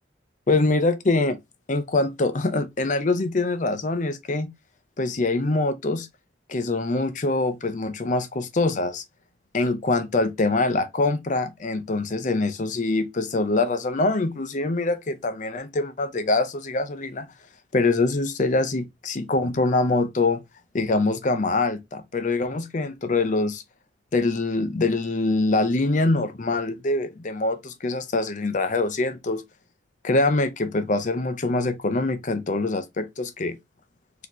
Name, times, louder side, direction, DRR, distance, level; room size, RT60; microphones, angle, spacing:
voice 1, 0.5-1.4 1.7-4.5 5.0-6.1 6.5-9.0 9.5-17.3 17.7-20.4 20.7-23.6 24.1-29.4 30.0-33.6, left 2 dB, 40° left, 0.5 m, -24 dB
4.1 x 2.8 x 3.0 m
head